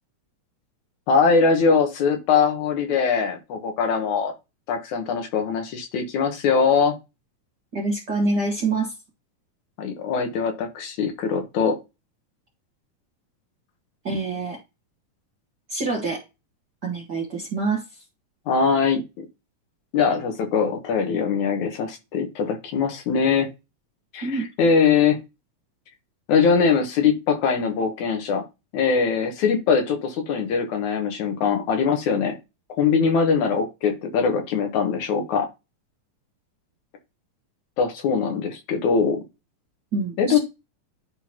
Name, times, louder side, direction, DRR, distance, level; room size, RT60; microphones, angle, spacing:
voice 1, 1.1-4.3 4.7-7.0 9.8-11.8 18.5-19.3 19.9-23.5 24.1-25.2 26.3-28.4 28.7-32.4 32.7-35.5 37.8-39.2 40.2-40.4, left 5 dB, 70° left, 2.5 m, -22 dB
voice 2, 7.7-8.9 14.0-14.6 15.7-16.2 16.8-18.0 24.2-24.5 39.9-40.4, right 3 dB, 45° right, 1.4 m, -26 dB
11.0 x 3.8 x 2.9 m
omnidirectional pair, 3.7 m